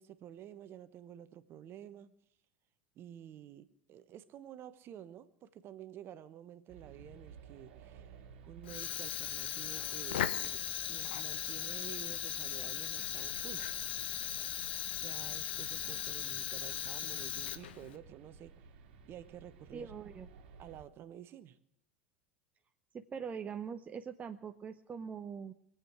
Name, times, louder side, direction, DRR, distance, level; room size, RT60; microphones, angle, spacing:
voice 1, 0.0-2.1 3.0-8.2 8.5-10.6 10.9-13.7 15.0-18.5 19.1-19.9 20.6-21.6, right 10 dB, 40° right, 13 dB, 1.1 m, -51 dB
sound 1, 6.7-20.9, right 5 dB, 60° right, 2.0 m, -55 dB
Fire, 8.6-18.0, left 10 dB, 65° left, 1.0 m, -38 dB
voice 2, 19.7-20.3 22.9-25.5, right 6 dB, 25° right, 7 dB, 0.8 m, -42 dB
24.0 x 8.5 x 6.1 m, 0.69 s
figure-of-eight pair, 75°, 6 cm